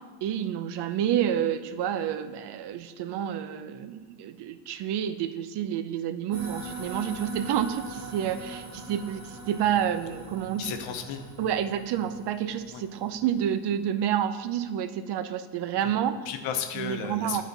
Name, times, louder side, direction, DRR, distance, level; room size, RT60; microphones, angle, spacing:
voice 1, 0.2-10.7 11.4-16.2 16.8-17.4, right 10 dB, 60° right, 11 dB, 0.6 m, -29 dB
sound 1, 6.3-13.9, right 2 dB, 25° right, 1.4 m, -42 dB
voice 2, 10.6-11.2 12.7-12.8 15.8-15.9 16.2-17.4, left 8 dB, 80° left, 6 dB, 0.9 m, -34 dB
9.0 x 4.2 x 4.0 m, 1.5 s
cardioid pair, 120°, 46 cm